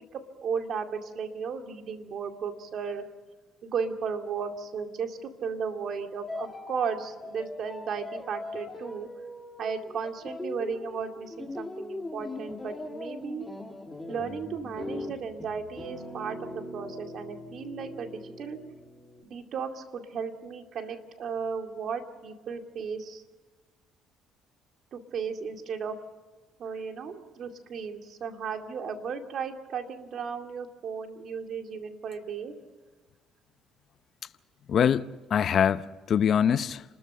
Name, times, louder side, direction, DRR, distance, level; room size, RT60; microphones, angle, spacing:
voice 1, 0.1-3.0 3.6-9.1 9.6-13.5 14.1-18.6 19.2-23.2 24.9-26.0 26.6-32.6, right 6 dB, 55° right, 2.4 m, -35 dB
sound 1, 6.3-19.2, left 2 dB, 15° left, 1.7 m, -40 dB
voice 2, 34.7-36.8, left 8 dB, 50° left, 0.6 m, -24 dB
30.0 x 13.5 x 6.8 m
cardioid pair, 105°, 0 cm